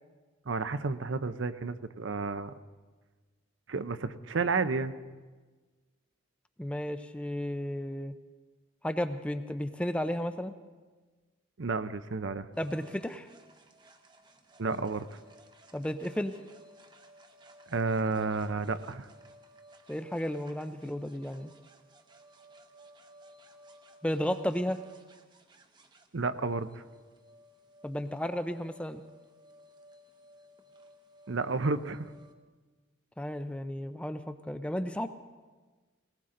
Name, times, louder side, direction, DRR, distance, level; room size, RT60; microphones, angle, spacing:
voice 1, 0.5-2.5 3.7-4.9 11.6-12.5 14.6-15.1 17.7-19.1 26.1-26.8 31.3-32.1, right 4 dB, 70° right, 12 dB, 0.7 m, -31 dB
voice 2, 6.6-8.1 8.8-10.5 12.6-13.3 15.7-16.3 19.9-21.5 24.0-24.8 27.8-29.0 33.2-35.1, equal, 5° left, 9 dB, 0.5 m, -33 dB
sound 1, 12.5-32.3, right 1 dB, 20° right, 0.9 m, -57 dB
19.5 x 19.0 x 3.8 m, 1.3 s
head